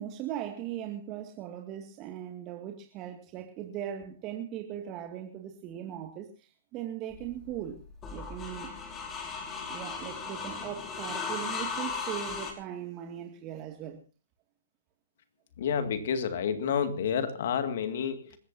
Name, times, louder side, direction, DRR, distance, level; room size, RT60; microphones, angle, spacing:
voice 1, 0.0-7.8 8.1-8.7 9.7-14.0, right 10 dB, 30° right, 2.2 m, -39 dB
sound 1, 7.1-12.5, left 5 dB, 20° left, 4.9 m, -37 dB
voice 2, 15.6-18.4, left 7 dB, 55° left, 2.0 m, -29 dB
27.5 x 15.0 x 2.7 m
figure-of-eight pair, 125°, 0 cm